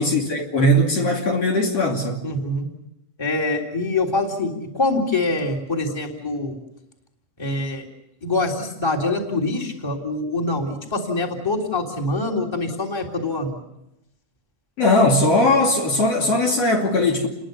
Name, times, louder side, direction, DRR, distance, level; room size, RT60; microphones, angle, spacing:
voice 1, 0.0-2.2 14.8-17.3, left 1 dB, 50° left, 3.7 m, -19 dB
voice 2, 2.2-2.7 3.2-6.6 7.4-7.8 8.2-13.6, left 2 dB, 10° left, 3.3 m, -24 dB
30.0 x 21.5 x 6.9 m
omnidirectional pair, 3.6 m